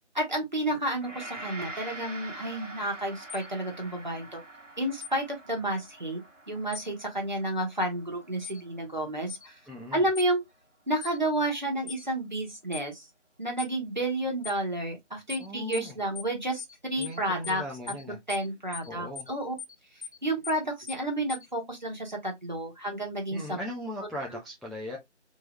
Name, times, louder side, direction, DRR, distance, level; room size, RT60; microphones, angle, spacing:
voice 1, 0.1-4.4 4.8-6.2 6.5-9.6 9.9-10.4 10.9-13.1 13.4-17.6 18.3-19.5 19.9-23.6, right 1 dB, 40° right, 1.2 m, -31 dB
Gong, 1.0-10.2, right 2 dB, 85° right, 1.1 m, -45 dB
sound 1, 3.3-3.5 5.0-5.2 6.7-6.9 8.4-8.6 9.3-9.5 10.2-10.3 11.0-11.2 11.9-12.0 12.7-12.9 13.6-13.7 14.4-14.6 15.3-15.5 15.7-15.9 16.2-16.3 16.6-16.7 17.0-17.2 17.4-17.6 17.9-18.0 18.3-18.5 18.7-18.9 19.2-19.3 19.6-19.7 20.0-20.2 20.4-20.6 20.9-21.0 21.3-21.5, left 7 dB, 65° left, 0.8 m, -40 dB
voice 2, 9.7-10.1 15.4-16.0 17.0-18.2 18.8-19.3 23.3-25.0, left 1 dB, ahead, 0.5 m, -39 dB
3.3 x 3.0 x 2.9 m
figure-of-eight pair, 175°, 36 cm